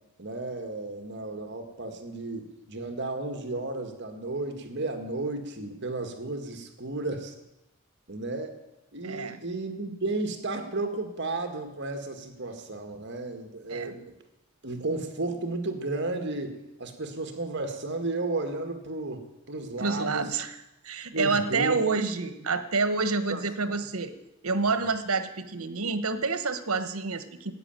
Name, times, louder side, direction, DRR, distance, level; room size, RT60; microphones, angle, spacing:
voice 1, 0.2-7.3 8.1-8.6 8.9-14.1 14.6-20.3 21.1-21.8 22.4-22.6 23.3-23.4 24.8-24.9, right 2 dB, 55° right, 6 dB, 1.8 m, -33 dB
voice 2, 9.0-9.4 13.7-14.0 19.8-20.5 20.8-24.1 24.4-27.5, right 4 dB, 85° right, 11 dB, 1.2 m, -28 dB
13.5 x 9.0 x 9.0 m, 0.92 s
head